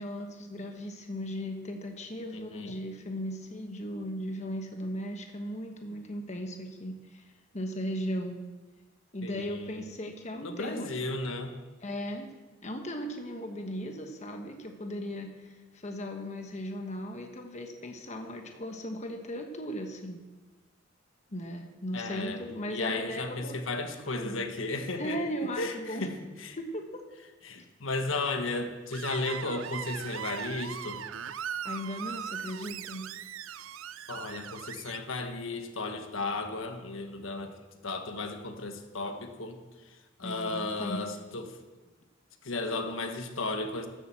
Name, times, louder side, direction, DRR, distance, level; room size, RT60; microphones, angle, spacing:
voice 1, 0.0-8.4 9.1-11.2 11.8-12.3 12.6-20.2 21.3-23.6 24.1-24.5 25.0-26.1 26.6-27.0 31.6-33.1 40.2-41.0, equal, 35° left, 4 dB, 1.2 m, -37 dB
voice 2, 2.3-2.7 9.2-9.8 10.4-11.5 21.9-22.4 22.7-25.2 25.6-26.1 26.4-26.6 27.4-31.0 34.1-39.6 39.8-41.6 42.4-43.9, left 3 dB, 80° left, 6 dB, 1.4 m, -34 dB
Screech, 28.9-35.0, right 8 dB, 90° right, 0.5 m, -39 dB
12.5 x 7.9 x 7.6 m, 1.2 s
head